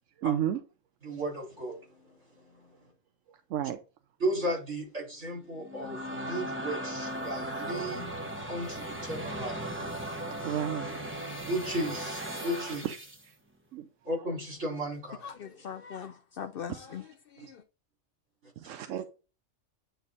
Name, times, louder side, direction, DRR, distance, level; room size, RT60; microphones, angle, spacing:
voice 1, 0.2-0.6 3.5-3.8 10.4-11.0 12.3-12.4 12.8-13.0 13.3-13.4 13.7-13.9 16.7-16.8 18.6-19.0, right 10 dB, 85° right, 1.0 m, -32 dB
voice 2, 1.0-2.8 4.2-10.5 11.4-12.8 14.0-15.3 17.4-17.5 18.4-18.5, right 1 dB, 65° right, 4.7 m, -35 dB
sound 1, 5.5-13.3, right 1 dB, 10° right, 1.0 m, -37 dB
voice 3, 15.2-17.6, left 7 dB, 60° left, 0.6 m, -41 dB
9.1 x 3.4 x 3.9 m
omnidirectional pair, 1.3 m